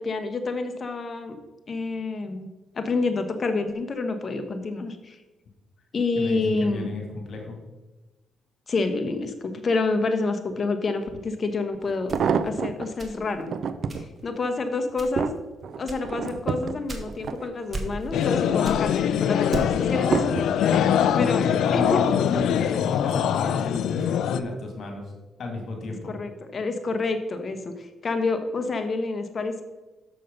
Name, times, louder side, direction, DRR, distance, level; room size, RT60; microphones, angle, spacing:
voice 1, 0.0-1.4 1.7-2.5 2.7-5.2 5.9-6.9 8.7-12.1 12.4-13.5 13.9-15.3 15.8-20.5 20.8-22.1 26.1-29.6, left 3 dB, 40° left, 7 dB, 1.1 m, -28 dB
voice 2, 6.2-7.6 16.6-16.7 18.4-18.5 21.1-25.1 25.4-26.1, left 2 dB, 55° left, 3 dB, 2.2 m, -33 dB
sound 1, 11.1-11.2 11.9-12.9 13.4-14.0 14.6-18.0 18.4-18.9 19.5-20.9 21.6-22.0 22.3-22.4, right 6 dB, 60° right, 0.5 m, -29 dB
sound 2, 12.1-13.5 13.9-14.3 14.9-15.4 15.9-17.4 17.7-18.3 18.6-19.9, right 2 dB, 30° right, 1.4 m, -37 dB
sound 3, 18.1-24.4, left 9 dB, 75° left, 0.4 m, -23 dB
6.8 x 6.4 x 5.4 m, 1.1 s
cardioid pair, 90°, 0 cm